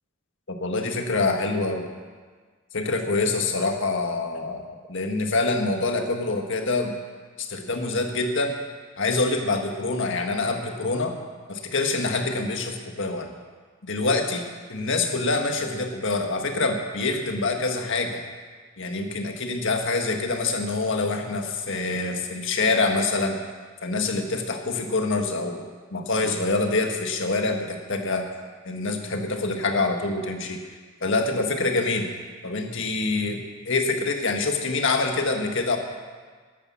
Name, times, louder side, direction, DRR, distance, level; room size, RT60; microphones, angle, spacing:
voice 1, 0.6-1.8 2.7-6.9 7.4-8.6 9.0-11.1 11.5-13.3 13.8-14.4 14.7-18.2 18.8-23.4 23.8-28.3 28.6-30.6 31.0-32.1 32.4-35.8, left 3 dB, 65° left, 4 dB, 1.6 m, -25 dB
12.5 x 10.5 x 7.2 m, 1.5 s
head